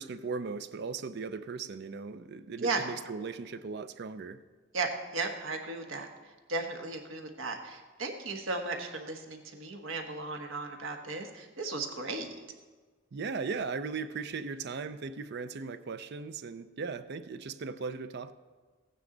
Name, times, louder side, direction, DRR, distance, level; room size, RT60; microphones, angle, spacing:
voice 1, 0.0-4.4 13.1-18.3, right 4 dB, 55° right, 12 dB, 0.5 m, -38 dB
voice 2, 4.7-6.1 6.5-12.3, right 3 dB, 75° right, 4 dB, 1.3 m, -35 dB
15.0 x 9.4 x 3.9 m, 1.4 s
head